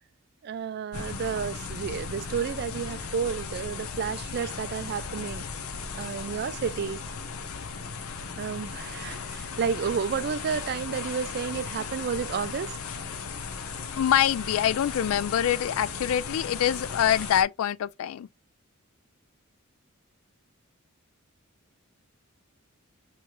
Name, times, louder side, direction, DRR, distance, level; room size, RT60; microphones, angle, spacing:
voice 1, 0.4-5.4 6.0-7.0 8.4-12.8, right 6 dB, 50° right, 0.3 m, -31 dB
sound 1, 0.9-17.4, left 5 dB, 85° left, 0.7 m, -36 dB
voice 2, 14.0-18.3, left 10 dB, 70° left, 0.3 m, -25 dB
4.6 x 3.0 x 2.2 m
head